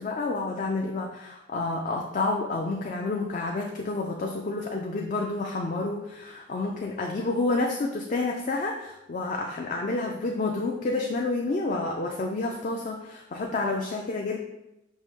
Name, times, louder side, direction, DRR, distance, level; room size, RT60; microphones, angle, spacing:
voice 1, 0.0-14.4, left 3 dB, 40° left, 1 dB, 0.3 m, -29 dB
5.3 x 2.7 x 3.6 m, 0.91 s
head